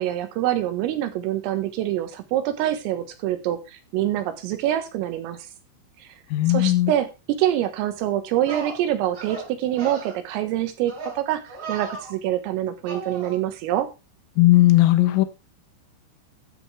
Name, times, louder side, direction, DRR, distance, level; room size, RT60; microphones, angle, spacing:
voice 1, 0.0-5.4 6.0-6.1 6.5-13.9, right 12 dB, 90° right, 4.1 m, -25 dB
voice 2, 6.3-6.9 14.4-15.3, left 16 dB, 85° left, 3.7 m, -17 dB
sound 1, 7.9-8.0 8.4-8.8 9.1-9.5 9.8-10.1 10.9-11.2 11.4-12.1 12.8-13.4, right 3 dB, 45° right, 5.3 m, -35 dB
13.0 x 8.8 x 3.4 m
omnidirectional pair, 5.8 m